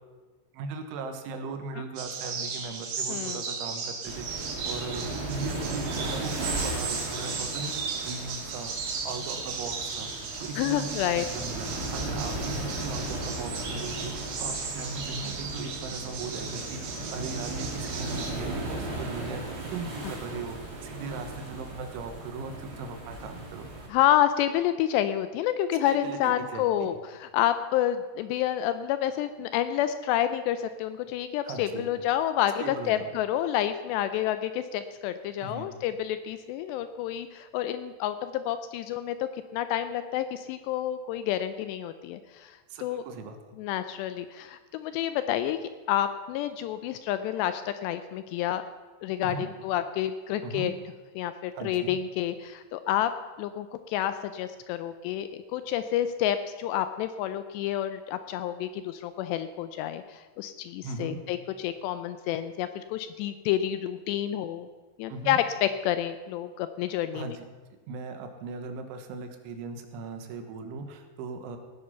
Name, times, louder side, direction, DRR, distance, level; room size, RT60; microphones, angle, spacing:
voice 1, 0.5-8.7 9.1-23.7 25.8-26.9 31.5-31.9 32.6-33.1 35.4-35.7 42.7-43.6 49.2-49.5 50.4-50.7 51.6-52.0 60.8-61.2 65.1-65.4 67.1-67.5 67.9-71.6, right 4 dB, 85° right, 7 dB, 3.7 m, -38 dB
sound 1, 2.0-18.3, right 5 dB, 65° right, 3.7 m, -36 dB
voice 2, 3.1-3.4 10.6-11.3 23.9-39.2 39.5-43.0 43.6-45.6 45.9-48.6 49.0-50.7 51.2-53.1 53.4-64.7 65.0-67.4, left 11 dB, 80° left, 11 dB, 2.5 m, -29 dB
sound 2, 4.0-23.9, right 2 dB, 25° right, 2.3 m, -36 dB
16.5 x 9.9 x 5.6 m, 1.4 s
omnidirectional pair, 5.3 m